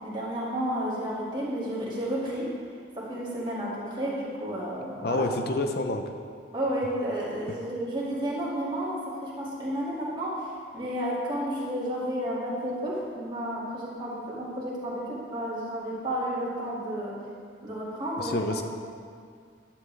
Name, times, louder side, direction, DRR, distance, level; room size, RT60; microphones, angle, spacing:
voice 1, 0.0-2.5 2.9-5.2 6.5-17.2 17.6-18.6, equal, 25° right, -7 dB, 2.1 m, -31 dB
voice 2, 5.0-6.0 18.2-18.6, left 2 dB, 55° left, 6 dB, 0.6 m, -28 dB
11.0 x 8.5 x 3.4 m, 2.1 s
head